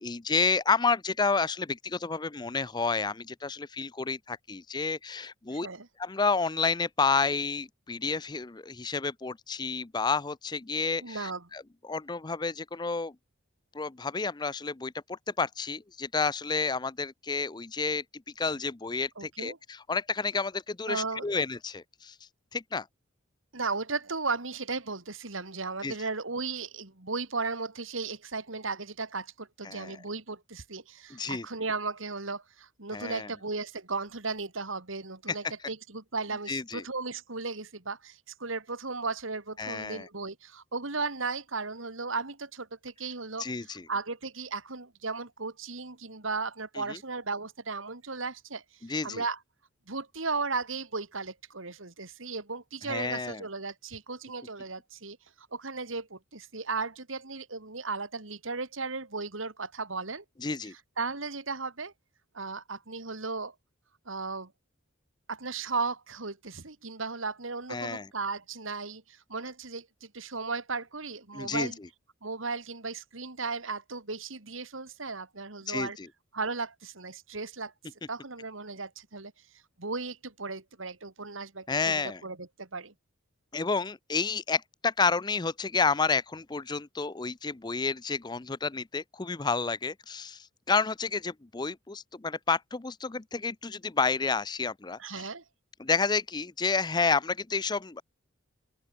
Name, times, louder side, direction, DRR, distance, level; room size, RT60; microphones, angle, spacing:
voice 1, 0.0-5.7 6.0-13.1 13.7-18.0 18.4-22.1 22.5-22.9 25.8-25.9 29.6-30.0 31.1-31.5 32.9-33.3 35.3-35.4 36.5-36.8 39.6-40.1 43.4-43.9 46.8-47.0 48.8-49.2 52.8-53.4 60.4-60.7 67.7-68.1 71.3-71.7 75.7-76.1 81.7-82.2 83.5-95.2 95.8-98.0, left 4 dB, 20° left, 0.5 m, -30 dB
voice 2, 5.5-5.9 11.0-11.5 19.2-19.6 20.9-21.3 23.5-48.6 49.0-49.4 49.9-60.2 61.0-61.9 62.3-63.5 64.1-64.5 65.3-71.8 72.2-76.0 76.3-77.7 78.1-79.3 79.8-82.9 95.0-95.4, right 4 dB, 80° right, 3.0 m, -36 dB
open air
head